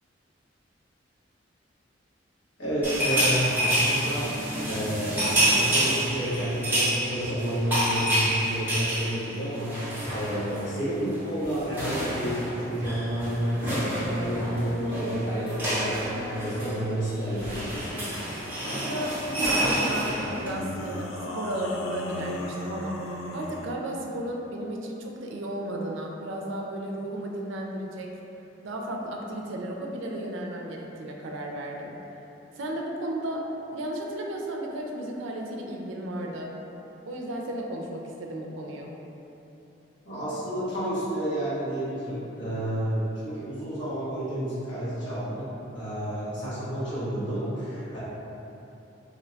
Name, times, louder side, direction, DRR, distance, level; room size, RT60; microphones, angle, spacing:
voice 1, 2.6-9.7 10.1-18.0 40.0-48.0, equal, 70° left, -12 dB, 1.2 m, -30 dB
sound 1, 2.8-10.7 11.0-11.2 11.4-20.5, right 1 dB, 10° right, 0.8 m, -28 dB
sound 2, 17.7-18.2 20.3-23.8, left 1 dB, 90° left, 0.3 m, -36 dB
voice 2, 18.4-23.0 23.3-28.1 28.6-31.9 32.6-33.5 33.7-36.5 37.1-38.9, right 1 dB, 80° right, 0 dB, 0.4 m, -34 dB
2.7 x 2.2 x 3.9 m, 3.0 s
head